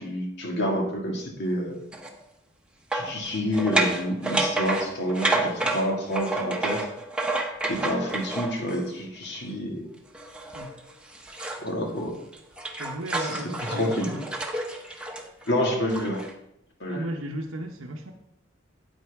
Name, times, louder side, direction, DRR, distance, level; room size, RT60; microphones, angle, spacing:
voice 1, 0.0-1.7 2.9-6.9 7.6-9.9 11.6-12.2 13.2-13.4 13.7-14.1 15.5-16.2 16.8-17.0, left 1 dB, 60° left, 1 dB, 2.0 m, -28 dB
sound 1, 1.9-2.1 2.9-8.9 10.1-11.7 12.1-16.3, right 2 dB, 5° right, 0.9 m, -30 dB
voice 2, 12.8-14.3 16.9-18.1, right 1 dB, 90° right, 1 dB, 0.8 m, -35 dB
9.0 x 9.0 x 3.5 m, 0.78 s
head